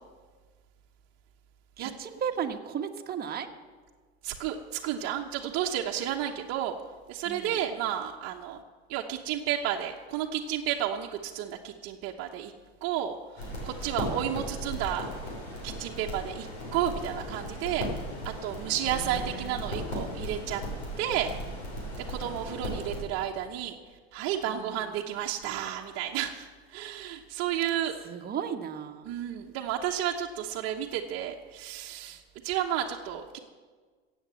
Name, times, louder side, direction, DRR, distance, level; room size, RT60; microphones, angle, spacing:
voice 1, 1.8-3.5 7.2-7.6 18.6-19.7 24.5-24.9 28.0-29.1, right 8 dB, 30° right, 4 dB, 1.4 m, -36 dB
voice 2, 4.2-6.8 7.1-8.6 8.9-12.5 12.8-15.1 15.6-17.9 18.2-20.6 21.0-21.3 22.0-23.7 24.1-28.0 29.0-33.4, right 10 dB, 50° right, -1 dB, 1.1 m, -32 dB
sound 1, 13.4-23.0, equal, 90° left, 5.3 m, -37 dB
15.5 x 8.3 x 7.6 m, 1.5 s
supercardioid pair, 105°, 31 cm